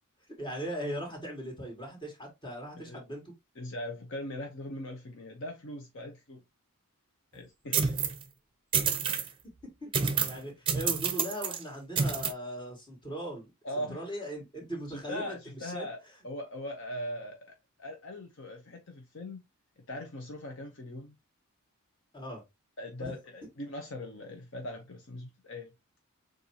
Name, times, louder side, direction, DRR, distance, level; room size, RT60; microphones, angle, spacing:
voice 1, 0.4-3.2 9.0-9.3 9.8-13.5 13.8-15.9 22.1-22.4 23.0-23.1, right 1 dB, 20° left, 2.4 m, -39 dB
voice 2, 3.6-6.4 7.3-8.0 13.6-14.1 14.9-16.0 16.2-19.4 19.9-21.2 22.8-25.7, left 1 dB, 55° left, 0.8 m, -40 dB
sound 1, 7.7-8.2 8.7-9.3 9.9-10.4 10.7-11.6 12.0-12.3, right 6 dB, 25° right, 0.7 m, -28 dB
6.9 x 2.6 x 2.8 m
head